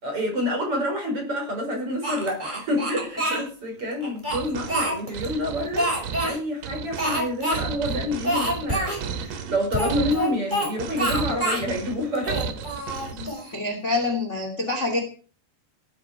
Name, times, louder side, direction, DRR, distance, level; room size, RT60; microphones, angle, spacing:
voice 1, 0.0-12.7, left 1 dB, 35° right, 5.9 m, -28 dB
Speech, 2.0-3.4 4.0-5.3 5.8-6.4 7.0-7.6 7.8-7.9 8.2-9.0 9.7-10.7 11.0-11.7 12.1-13.5, right 1 dB, 10° right, 5.4 m, -26 dB
sound 1, 4.3-13.3, right 6 dB, 80° right, 3.8 m, -33 dB
voice 2, 13.1-15.0, left 3 dB, 20° left, 2.3 m, -27 dB
18.0 x 11.5 x 4.9 m
omnidirectional pair, 4.8 m